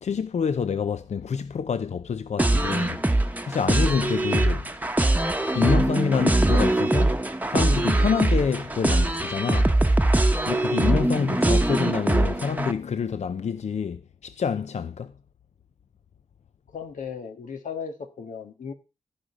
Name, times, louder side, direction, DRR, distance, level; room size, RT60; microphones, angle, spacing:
voice 1, 0.0-3.0 3.4-4.6 5.5-7.2 7.5-9.7 10.5-15.1, left 6 dB, 60° left, 0.5 m, -27 dB
sound 1, 2.4-12.7, right 1 dB, 15° right, 1.0 m, -22 dB
voice 2, 16.7-18.7, left 6 dB, 85° left, 1.6 m, -36 dB
15.0 x 5.1 x 5.0 m
wide cardioid pair, 80°, 13 cm